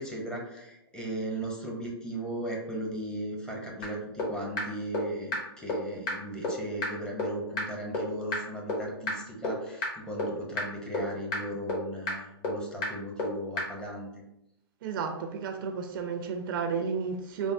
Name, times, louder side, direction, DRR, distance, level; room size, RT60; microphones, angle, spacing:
voice 1, 0.0-14.1, right 1 dB, 5° left, -2 dB, 0.6 m, -37 dB
sound 1, 3.8-3.9 4.2-4.3 4.6-4.7 4.9-5.0 5.3-5.4 5.7-5.8 6.1-6.2 6.4-6.5 6.8-6.9 7.2-7.3 7.6-7.7 7.9-8.0 8.3-8.4 8.7-8.8 9.1-9.2 9.4-9.5 9.8-9.9 10.2-10.3 10.6-10.7 10.9-11.0 11.3-11.4 11.7-11.8 12.1-12.2 12.4-12.5 12.8-12.9 13.2-13.3 13.6-13.7, left 2 dB, 35° left, 0.9 m, -29 dB
voice 2, 14.8-17.5, right 5 dB, 55° right, 5 dB, 0.4 m, -32 dB
3.3 x 2.0 x 2.5 m, 0.86 s
hypercardioid pair, 120°, 14 cm